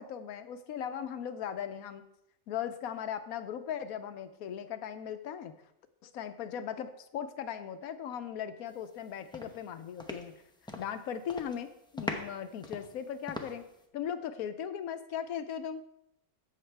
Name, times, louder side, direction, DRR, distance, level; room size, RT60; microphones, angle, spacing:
voice 1, 0.0-2.0 2.5-5.5 6.0-10.3 10.8-13.7 13.9-15.8, left 8 dB, 80° left, 11 dB, 1.1 m, -38 dB
sound 1, 8.8-9.0 9.3-11.0 11.3-11.6 12.0-13.8, left 1 dB, 5° left, 0.5 m, -41 dB
15.0 x 5.9 x 3.3 m, 0.80 s
omnidirectional pair, 1.5 m